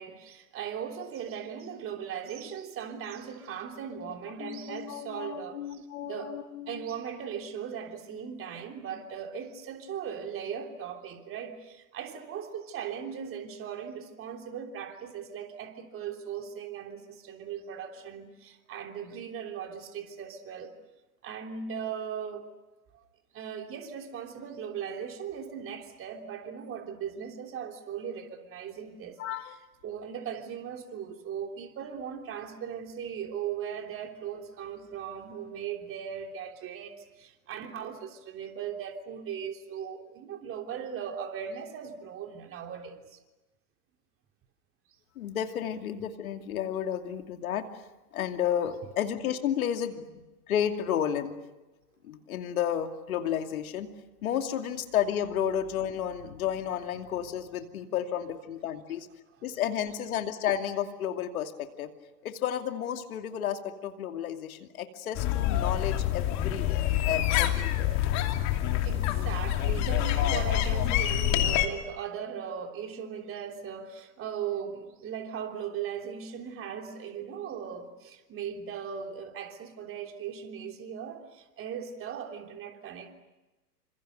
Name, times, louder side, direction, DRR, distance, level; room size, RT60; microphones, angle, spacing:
voice 1, 0.0-6.4 6.7-20.8 21.2-22.5 22.9-23.0 23.3-29.2 29.4-29.6 29.8-43.2 68.8-83.1, right 8 dB, 25° right, 4 dB, 3.3 m, -38 dB
voice 2, 4.0-6.8 29.2-29.6 45.2-47.6 48.1-51.4 52.0-53.9 54.2-59.1 59.4-61.9 62.2-68.0, left 9 dB, 60° left, 6 dB, 2.6 m, -32 dB
sound 1, 65.1-71.7, left 12 dB, 35° left, 2.8 m, -26 dB
28.5 x 26.5 x 6.7 m, 1.1 s
hypercardioid pair, 110°, 48 cm